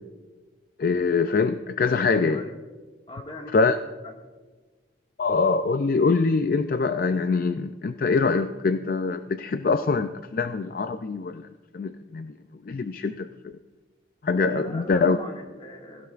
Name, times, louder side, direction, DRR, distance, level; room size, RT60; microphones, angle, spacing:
voice 1, 0.8-2.4 3.5-3.7 5.2-11.5 11.7-12.3 12.7-13.3 14.2-15.2, left 4 dB, 50° left, 10 dB, 0.4 m, -24 dB
voice 2, 2.1-2.5 3.1-3.8 4.0-4.1 14.4-16.1, left 1 dB, 30° left, 1 dB, 1.8 m, -39 dB
17.0 x 15.5 x 2.5 m, 1.3 s
head